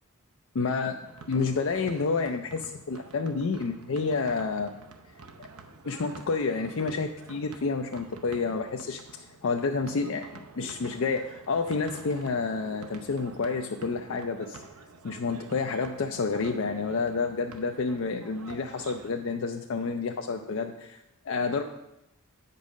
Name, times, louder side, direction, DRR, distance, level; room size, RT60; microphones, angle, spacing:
voice 1, 0.5-1.0 1.3-4.7 5.4-5.5 5.9-14.6 15.0-21.6, left 4 dB, 60° left, 4 dB, 0.4 m, -29 dB
sound 1, 1.1-19.1, right 4 dB, 85° right, 0.7 m, -49 dB
8.2 x 5.4 x 5.2 m, 0.88 s
head